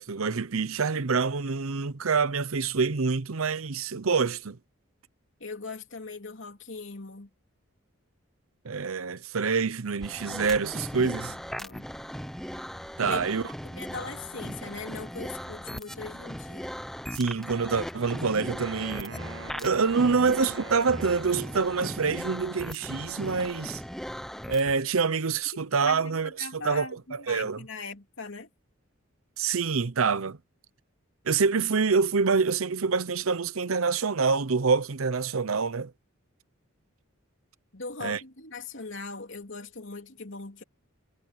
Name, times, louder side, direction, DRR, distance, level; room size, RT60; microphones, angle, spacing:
voice 1, 0.0-4.6 8.6-11.3 13.0-13.4 17.1-19.2 19.6-23.8 24.5-27.6 29.4-30.4 31.2-35.9 38.0-38.2, right 5 dB, 80° right, 0.8 m, -26 dB
voice 2, 5.4-7.3 11.0-11.9 13.0-16.7 25.8-28.5 37.7-40.6, left 4 dB, 65° left, 3.1 m, -40 dB
sound 1, 10.0-24.8, equal, ahead, 0.8 m, -38 dB
Wind instrument woodwind instrument, 18.6-22.1, right 3 dB, 65° right, 1.6 m, -44 dB
head